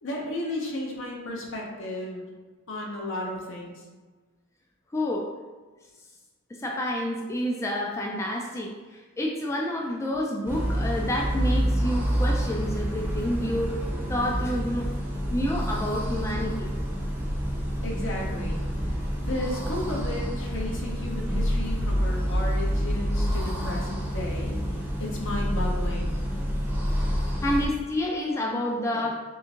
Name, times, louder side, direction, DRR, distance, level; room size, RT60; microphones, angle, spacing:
voice 1, 0.0-2.3 2.7-3.8 17.8-24.6 25.0-26.2, left 1 dB, 65° left, -2 dB, 0.8 m, -34 dB
voice 2, 4.9-5.3 6.6-13.8 14.1-15.0 15.3-16.7 27.4-29.2, left 1 dB, 15° left, -2 dB, 0.3 m, -29 dB
sound 1, 10.5-27.7, equal, 10° right, 0.7 m, -28 dB
3.7 x 3.4 x 2.9 m, 1.3 s
head